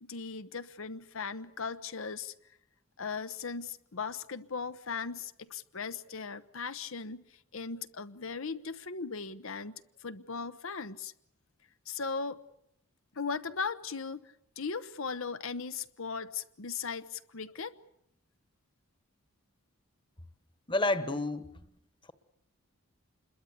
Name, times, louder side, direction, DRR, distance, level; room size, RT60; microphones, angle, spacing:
voice 1, 0.0-2.3 3.0-9.7 10.0-11.1 11.9-12.4 13.1-14.2 14.6-17.7, left 5 dB, 70° left, 11 dB, 0.9 m, -38 dB
voice 2, 20.7-21.5, left 2 dB, 20° left, 12 dB, 1.3 m, -29 dB
27.5 x 22.0 x 8.2 m, 0.75 s
head